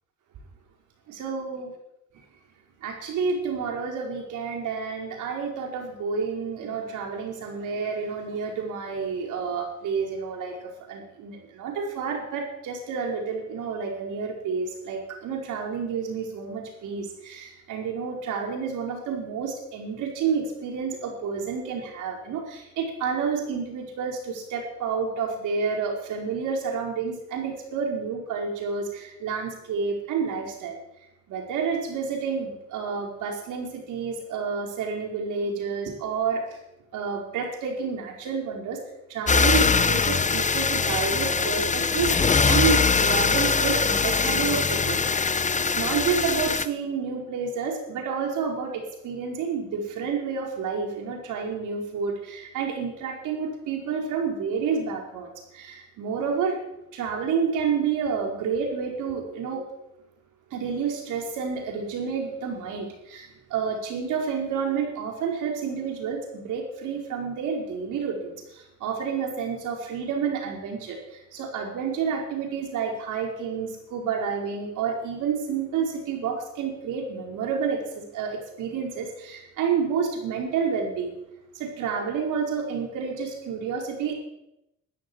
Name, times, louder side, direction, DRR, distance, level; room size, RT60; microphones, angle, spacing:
voice 1, 1.2-1.7 2.8-30.8 31.3-36.4 36.9-38.8 39.1-45.0 45.3-56.6 56.9-59.6 60.5-81.1 81.5-84.1, right 6 dB, 85° right, 1 dB, 4.9 m, -29 dB
sound 1, 39.3-46.7, left 5 dB, 25° left, 0.9 m, -22 dB
13.5 x 10.5 x 10.0 m, 0.86 s
cardioid pair, 90°, 30 cm